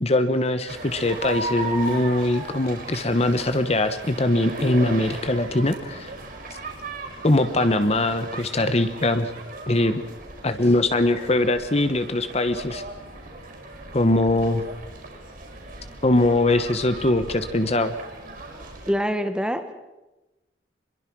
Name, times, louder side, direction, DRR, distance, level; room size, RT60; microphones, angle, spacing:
voice 1, 0.0-6.1 7.2-9.3 9.7-10.0 10.4-12.8 13.9-14.6 16.0-17.9, left 2 dB, 35° left, 10 dB, 1.1 m, -22 dB
sound 1, 0.7-18.9, right 2 dB, 50° right, 5.4 m, -37 dB
voice 2, 18.9-19.7, equal, 5° right, 9 dB, 1.5 m, -25 dB
25.0 x 22.0 x 6.2 m, 1.0 s
head